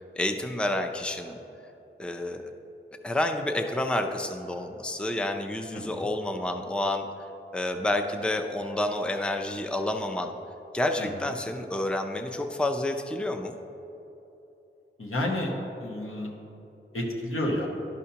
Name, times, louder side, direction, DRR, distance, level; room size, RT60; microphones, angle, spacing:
voice 1, 0.2-1.4 2.0-2.4 3.0-7.1 7.5-10.3 10.7-13.6, left 1 dB, 5° left, 5 dB, 0.5 m, -29 dB
voice 2, 5.7-6.1 11.0-11.3 15.0-15.5 15.8-16.3 16.9-17.7, left 1 dB, 85° left, -2 dB, 1.1 m, -30 dB
11.5 x 5.5 x 2.8 m, 3.0 s
wide cardioid pair, 60°, 21 cm